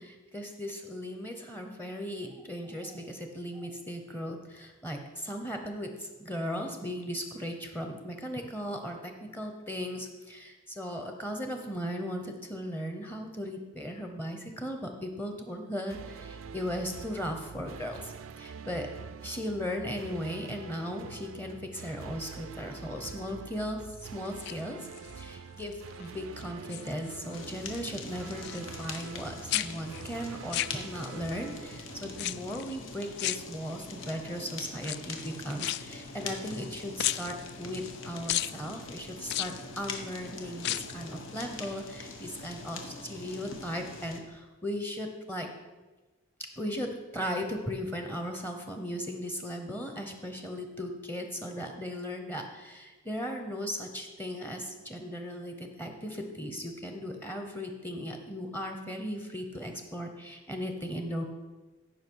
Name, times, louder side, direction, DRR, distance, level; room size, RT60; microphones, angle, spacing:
voice 1, 0.0-18.9 19.2-24.8 25.2-45.5 46.6-61.2, equal, 10° left, 4 dB, 0.9 m, -37 dB
sound 1, 15.9-32.9, right 5 dB, 90° right, 0.4 m, -46 dB
sound 2, 24.3-25.2 25.7-26.1 26.4-27.4 27.7-29.2 29.5-31.3 32.1-32.7 33.2-34.0 34.8-36.7 37.0-38.0 38.3-38.6 39.2-40.1 40.5-41.0 41.4-41.5, left 14 dB, 55° left, 0.3 m, -35 dB
Fire, 27.3-44.2, left 3 dB, 80° left, 1.2 m, -44 dB
15.0 x 5.6 x 4.7 m, 1.2 s
head